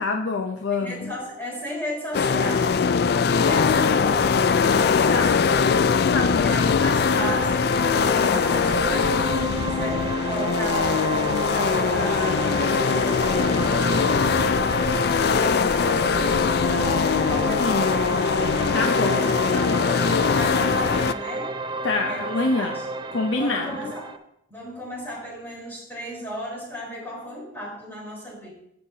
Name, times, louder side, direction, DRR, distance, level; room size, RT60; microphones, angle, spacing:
voice 1, 0.0-1.1 5.1-5.3 6.1-6.5 17.6-17.9 18.7-19.3 19.7-19.8 21.8-22.7 23.1-23.7, left 3 dB, 75° left, 3 dB, 0.7 m, -25 dB
voice 2, 0.7-4.4 6.3-7.7 8.2-14.8 15.1-18.2 19.5-21.5 22.1-22.8 23.4-24.1 24.5-28.5, equal, 10° left, -6 dB, 4.1 m, -35 dB
sound 1, 2.1-21.1, left 5 dB, 55° left, 0.3 m, -21 dB
sound 2, 7.2-24.2, right 2 dB, 25° right, 0.5 m, -31 dB
sound 3, 8.5-18.8, equal, 70° right, 2.2 m, -40 dB
15.5 x 6.6 x 2.8 m, 0.78 s
head